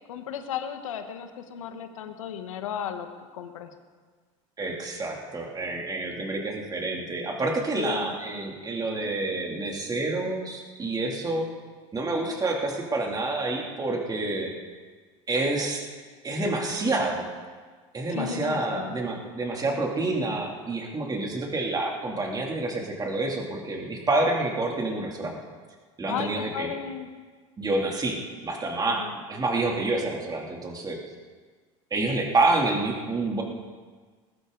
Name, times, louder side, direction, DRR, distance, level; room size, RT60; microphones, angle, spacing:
voice 1, 0.1-3.1 3.3-3.7 7.8-8.1 18.1-19.0 26.1-27.1 28.9-29.1, left 8 dB, 90° left, 7 dB, 1.4 m, -34 dB
voice 2, 4.6-11.5 11.9-14.5 15.3-15.8 16.2-17.3 17.9-25.4 26.0-26.7 27.6-31.0 31.9-33.4, right 2 dB, 25° right, 0 dB, 2.9 m, -28 dB
20.5 x 12.0 x 4.0 m, 1.5 s
hypercardioid pair, 90°, 16 cm